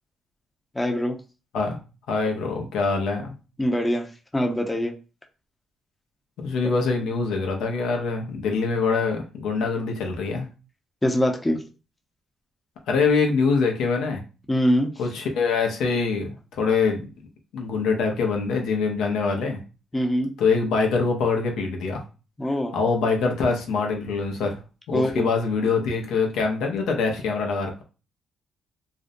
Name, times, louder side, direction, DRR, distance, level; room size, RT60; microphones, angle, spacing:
voice 1, 0.8-1.2 3.6-4.1 4.3-4.9 11.0-11.6 14.5-14.9 19.9-20.3 22.4-22.7 24.9-25.3, equal, 15° left, 3 dB, 0.5 m, -23 dB
voice 2, 2.1-3.3 6.4-10.5 12.9-14.2 15.0-17.1 17.5-19.6 20.4-22.0 22.7-24.6 24.9-27.8, left 4 dB, 85° left, 2 dB, 0.6 m, -24 dB
2.5 x 2.0 x 2.6 m, 0.33 s
cardioid pair, 90°, 0 cm